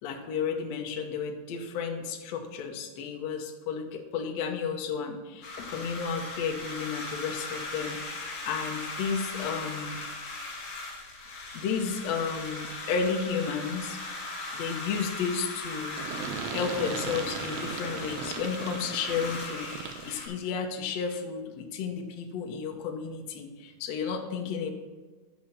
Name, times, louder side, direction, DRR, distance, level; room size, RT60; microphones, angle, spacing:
voice 1, 0.0-10.0 11.5-14.0 14.5-16.0 16.5-24.7, left 6 dB, 85° left, 2 dB, 1.5 m, -32 dB
sound 1, 5.4-20.3, left 2 dB, 45° left, 3.2 m, -38 dB
sound 2, 16.0-20.2, right 7 dB, 75° right, 2.3 m, -38 dB
10.5 x 7.8 x 4.3 m, 1.3 s
omnidirectional pair, 4.7 m